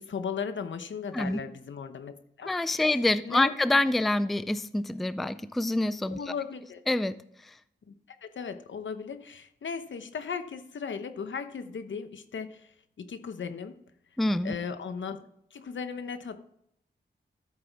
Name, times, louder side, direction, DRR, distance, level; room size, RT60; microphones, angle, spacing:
voice 1, 0.0-3.6 6.1-6.8 7.9-8.0 8.2-12.7 13.0-13.7 14.4-15.2 15.5-16.4, left 6 dB, 80° left, 9 dB, 0.9 m, -37 dB
voice 2, 2.5-6.3 6.9-7.2 14.2-14.5, left 2 dB, ahead, 14 dB, 0.3 m, -26 dB
13.5 x 7.6 x 3.5 m, 0.73 s
wide cardioid pair, 155°, 19 cm